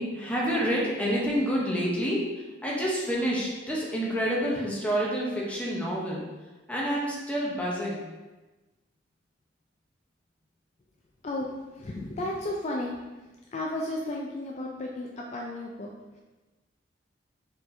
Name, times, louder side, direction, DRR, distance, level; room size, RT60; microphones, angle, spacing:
voice 1, 0.0-6.3 6.7-8.1, equal, 10° left, -5 dB, 0.8 m, -28 dB
voice 2, 11.2-16.2, left 1 dB, 35° left, -1 dB, 0.3 m, -34 dB
4.3 x 4.1 x 2.7 m, 1.2 s
head